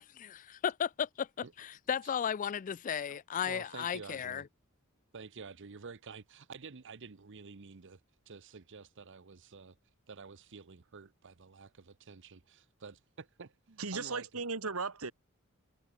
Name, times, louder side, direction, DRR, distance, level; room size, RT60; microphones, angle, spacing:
voice 1, 0.0-4.4, left 8 dB, 35° left, 0.3 m, -35 dB
voice 2, 3.1-4.4 5.1-8.0 8.3-9.8 10.1-14.4, right 5 dB, 60° right, 0.9 m, -50 dB
voice 3, 13.8-15.1, right 4 dB, 85° right, 2.1 m, -36 dB
head